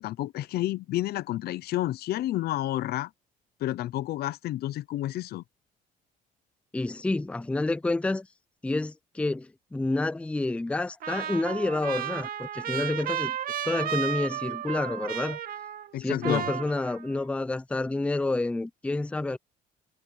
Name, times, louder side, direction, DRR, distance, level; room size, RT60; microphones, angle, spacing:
voice 1, 0.0-3.1 3.6-5.4 15.9-16.5, left 14 dB, 70° left, 0.8 m, -30 dB
voice 2, 6.7-8.3 8.6-13.3 13.6-15.4 16.0-19.4, left 2 dB, 5° left, 0.5 m, -29 dB
Trumpet, 11.0-17.2, right 10 dB, 60° right, 2.2 m, -33 dB
cardioid pair, 110°, 17 cm